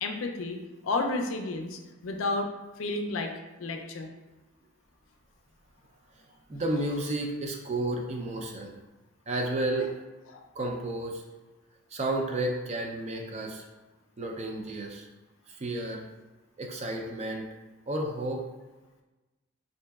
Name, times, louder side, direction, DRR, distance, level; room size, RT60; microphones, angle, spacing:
voice 1, 0.0-2.5 2.8-3.3 3.6-4.1 10.3-10.5, left 2 dB, 75° left, 4 dB, 0.4 m, -31 dB
voice 2, 6.5-8.7 9.3-9.9 10.6-11.2 11.9-13.7 14.2-15.1 15.5-16.0 16.6-17.5 17.9-18.4, right 1 dB, 35° right, 1 dB, 0.4 m, -31 dB
3.9 x 2.6 x 2.3 m, 1.1 s
head